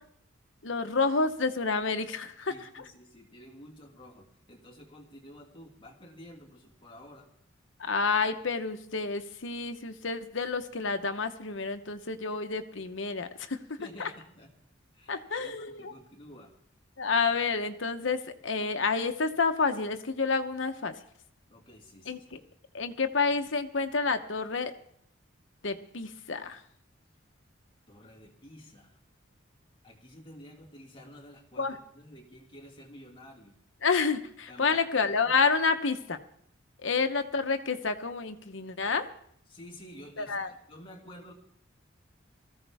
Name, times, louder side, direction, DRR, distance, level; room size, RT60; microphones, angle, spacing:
voice 1, 0.6-2.8 7.8-14.1 15.1-15.9 17.0-21.0 22.1-22.4 22.7-24.7 25.6-26.6 31.6-31.8 33.8-36.2 36.8-39.1 40.2-40.5, left 4 dB, 70° left, 7 dB, 1.0 m, -29 dB
voice 2, 2.5-7.3 13.8-14.5 14.9-16.5 21.5-22.2 27.9-29.0 29.8-33.6 34.5-34.8 35.2-35.3 37.0-37.1 39.5-41.3, equal, 25° left, 0 dB, 2.1 m, -50 dB
19.0 x 14.5 x 3.5 m, 0.66 s
head